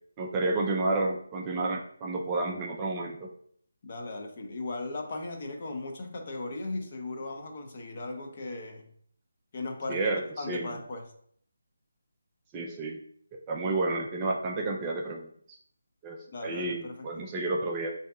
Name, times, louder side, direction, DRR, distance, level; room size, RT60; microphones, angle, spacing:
voice 1, 0.2-3.3 9.9-10.7 12.5-13.0 13.5-15.6 16.0-17.9, right 2 dB, 15° right, 0 dB, 0.3 m, -31 dB
voice 2, 3.8-8.9 9.5-11.1 16.3-17.2, left 2 dB, 40° left, 3 dB, 0.6 m, -37 dB
6.2 x 2.7 x 2.3 m, 0.62 s
figure-of-eight pair, 165°, 0 cm